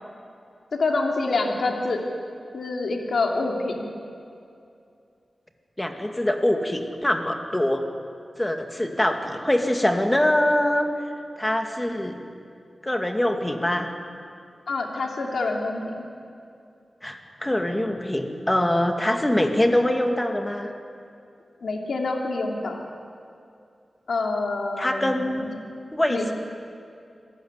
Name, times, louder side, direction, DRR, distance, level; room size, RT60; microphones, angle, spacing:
voice 1, 0.8-2.0 2.5-3.9 14.7-15.8 21.6-22.8 24.1-25.5 26.1-26.3, left 3 dB, 80° left, 1 dB, 2.8 m, -26 dB
voice 2, 5.8-7.8 8.4-10.9 11.4-12.2 12.8-13.9 17.0-20.7 24.8-25.5 25.9-26.3, left 1 dB, 15° left, 4 dB, 2.3 m, -23 dB
26.0 x 14.5 x 9.7 m, 2.5 s
wide cardioid pair, 75°, 0 cm